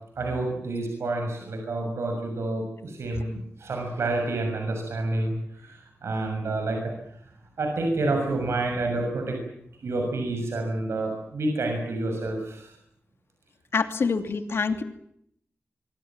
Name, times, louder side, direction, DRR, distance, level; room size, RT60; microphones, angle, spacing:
voice 1, 0.2-6.9 7.6-9.4 9.8-12.7 14.0-14.2, right 2 dB, 85° right, 3 dB, 6.5 m, -29 dB
voice 2, 13.7-14.8, left 5 dB, 70° left, 8 dB, 2.7 m, -26 dB
24.5 x 24.5 x 7.5 m, 0.72 s
wide cardioid pair, 140°, 4 cm